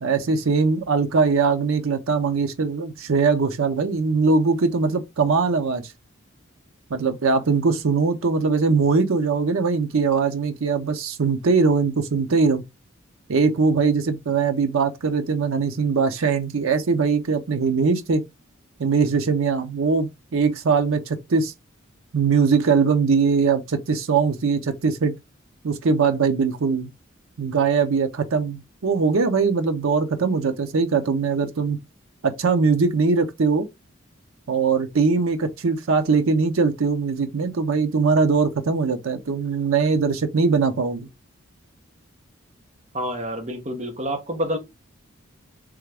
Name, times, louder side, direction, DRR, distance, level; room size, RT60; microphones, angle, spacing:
voice 1, 0.0-5.8 6.9-12.6 13.3-18.2 18.8-21.5 22.1-25.2 25.6-26.9 27.4-31.8 32.2-33.7 34.5-41.1, right 4 dB, 85° right, 0.6 m, -21 dB
voice 2, 42.9-44.6, equal, 35° right, 1.0 m, -28 dB
3.5 x 3.3 x 3.4 m
head